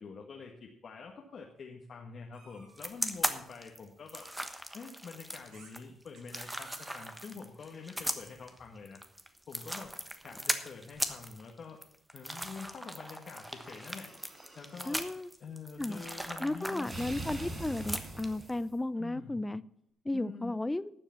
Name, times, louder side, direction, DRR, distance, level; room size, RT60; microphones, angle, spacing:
voice 1, 0.0-4.3 4.7-9.0 9.5-9.9 10.2-11.8 12.1-14.1 14.6-17.0 19.0-19.4 20.1-20.5, left 5 dB, 50° left, 0 dB, 1.6 m, -46 dB
sound 1, 2.3-2.9 4.2-4.4 5.5-5.7 6.2-7.3, right 4 dB, 80° right, 6.3 m, -56 dB
sound 2, 2.8-18.5, equal, 5° right, 1.3 m, -38 dB
sound 3, 13.2-15.0 16.8-18.8, right 2 dB, 20° right, 4.0 m, -44 dB
voice 2, 14.8-15.3 15.8-16.0 16.4-19.6 20.0-20.9, left 2 dB, 15° left, 17 dB, 0.5 m, -34 dB
12.0 x 7.1 x 7.0 m, 0.74 s
cardioid pair, 90°, 0 cm